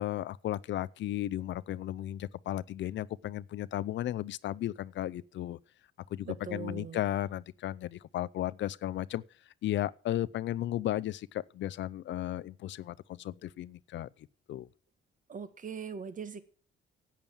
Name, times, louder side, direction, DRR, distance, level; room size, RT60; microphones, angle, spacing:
voice 1, 0.0-5.6 6.1-9.2 9.6-14.1 14.5-14.7, left 13 dB, 70° left, 0.6 m, -34 dB
voice 2, 6.2-7.0 15.3-16.4, right 6 dB, 40° right, 1.5 m, -40 dB
11.0 x 8.8 x 7.2 m
cardioid pair, 90°, 20 cm